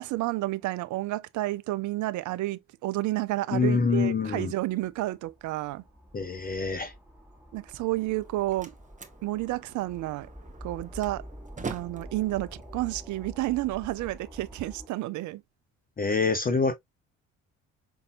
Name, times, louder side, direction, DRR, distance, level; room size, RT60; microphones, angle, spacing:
voice 1, 0.0-5.8 7.5-8.7 9.2-10.3 10.6-11.2 11.7-15.4, right 17 dB, 50° right, 0.5 m, -30 dB
voice 2, 3.5-4.5 6.1-6.9 16.0-16.7, left 4 dB, 25° left, 0.7 m, -25 dB
sound 1, 4.5-14.9, equal, 5° right, 1.8 m, -47 dB
Slam, 8.0-14.0, right 5 dB, 20° right, 0.8 m, -44 dB
5.3 x 2.7 x 2.3 m
figure-of-eight pair, 50°, 39 cm